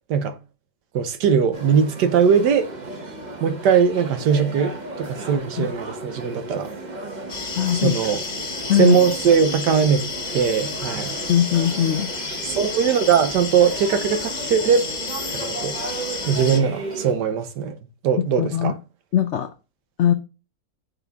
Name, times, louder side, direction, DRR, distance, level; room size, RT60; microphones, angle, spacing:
voice 1, 0.9-2.7 3.4-6.7 7.7-8.2 8.8-10.0 10.3-11.2 12.6-14.8 15.3-15.8 16.3-17.8 18.0-18.8, right 7 dB, 80° right, 1.4 m, -20 dB
sound 1, 1.5-17.1, right 3 dB, 35° right, 0.8 m, -35 dB
sound 2, 7.3-16.6, left 4 dB, 40° left, 1.0 m, -31 dB
voice 2, 7.6-7.9 8.7-9.0 11.3-12.1 18.4-18.7 19.1-19.5 20.0-20.1, left 10 dB, 90° left, 0.6 m, -20 dB
7.1 x 4.1 x 3.5 m
omnidirectional pair, 1.8 m